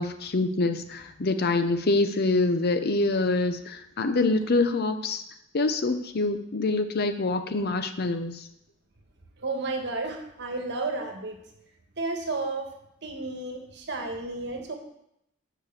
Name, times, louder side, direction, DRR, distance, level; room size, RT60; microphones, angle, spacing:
voice 1, 0.0-5.2 5.5-8.5, left 2 dB, 50° left, 9 dB, 0.6 m, -25 dB
voice 2, 9.4-11.4 12.0-12.7 13.0-14.7, right 3 dB, 55° right, 4 dB, 1.4 m, -32 dB
7.3 x 5.0 x 7.3 m, 0.79 s
head